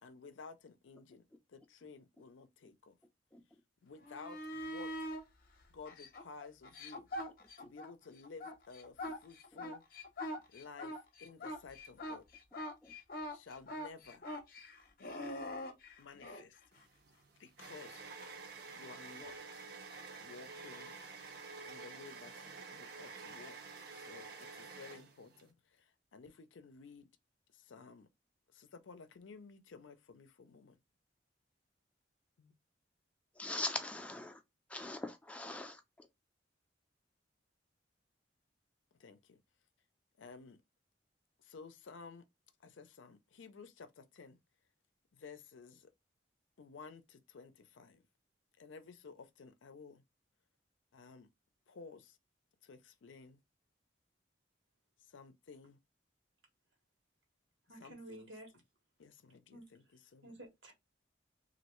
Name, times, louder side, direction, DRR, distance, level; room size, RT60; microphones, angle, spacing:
voice 1, 0.0-1.2 1.5-3.0 3.8-4.9 5.7-7.1 7.6-9.8 10.5-12.2 13.3-14.2 16.0-16.6 17.4-18.0 18.7-19.3 20.2-20.9 21.7-23.6 24.0-27.1 27.5-28.1 28.5-30.8 32.4-32.5 39.0-39.4 40.2-40.6 41.4-42.2 42.6-44.4 45.1-45.9 46.6-48.0 48.6-50.0 50.9-51.3 51.7-52.2 52.6-53.4 55.1-55.8 57.8-58.3 59.0-60.4, left 4 dB, 90° left, 0.5 m, -54 dB
sound 1, 4.0-5.2 5.8-7.9 8.2-16.4 19.2-19.3, left 1 dB, 50° left, 0.6 m, -43 dB
sound 2, 16.8-25.5, right 4 dB, 55° right, 0.7 m, -49 dB
voice 2, 33.4-34.4 34.7-36.1, left 2 dB, 5° left, 0.4 m, -42 dB
voice 3, 57.7-58.5 59.5-59.7 60.2-60.7, right 1 dB, 80° right, 1.3 m, -51 dB
3.0 x 2.6 x 3.0 m
head